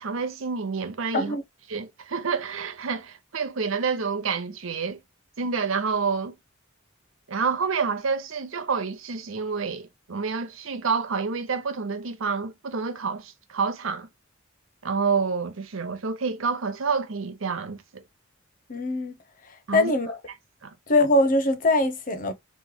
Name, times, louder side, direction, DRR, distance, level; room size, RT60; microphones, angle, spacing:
voice 1, 0.0-1.4 1.7-5.0 5.4-6.3 7.3-14.1 14.8-18.0 19.7-19.9 20.6-20.7, right 5 dB, 80° right, 0.7 m, -28 dB
voice 2, 18.7-19.1 19.7-20.2 20.9-22.3, left 2 dB, 40° left, 0.7 m, -22 dB
3.1 x 3.1 x 3.7 m
head